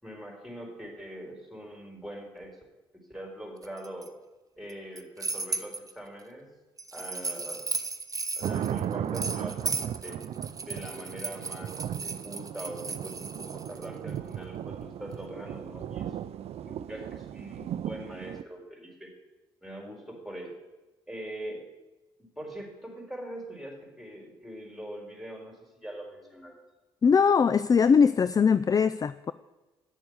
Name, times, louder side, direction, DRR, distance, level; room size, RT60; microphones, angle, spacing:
voice 1, 0.0-2.6 3.1-4.1 4.6-6.5 6.9-7.6 8.3-10.2 10.6-11.7 12.0-16.2 16.6-19.1 19.6-20.5 21.1-21.6 22.2-26.5, right 1 dB, ahead, 1 dB, 4.2 m, -42 dB
sound 1, 3.6-4.1 4.7-5.9 6.8-13.9, right 3 dB, 30° right, 0.9 m, -35 dB
sound 2, 8.4-18.4, right 10 dB, 60° right, 0.5 m, -36 dB
voice 2, 27.0-29.3, left 6 dB, 30° left, 15 dB, 0.4 m, -21 dB
8.4 x 7.0 x 7.9 m, 1.1 s
hypercardioid pair, 50°, 12 cm